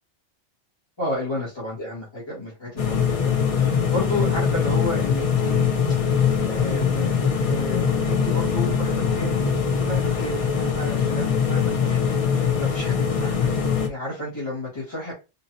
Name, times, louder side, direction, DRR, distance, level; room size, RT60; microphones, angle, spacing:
voice 1, 1.0-5.7 6.1-9.4 9.8-13.5 13.8-15.1, left 1 dB, 25° left, -8 dB, 1.7 m, -32 dB
sound 1, 2.8-13.9, left 6 dB, 45° left, 0.5 m, -22 dB
3.9 x 2.8 x 2.7 m, 0.28 s
omnidirectional pair, 1.2 m